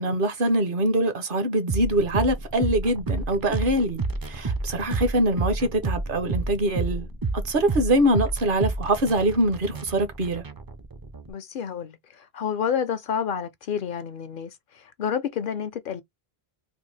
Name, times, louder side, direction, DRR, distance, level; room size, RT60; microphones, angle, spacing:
voice 1, 0.0-7.1 7.4-10.4, right 1 dB, 60° right, 0.9 m, -23 dB
sound 1, 1.7-11.3, right 3 dB, 30° right, 0.4 m, -30 dB
voice 2, 11.3-16.0, left 7 dB, 60° left, 0.6 m, -29 dB
3.4 x 2.5 x 3.1 m
omnidirectional pair, 1.0 m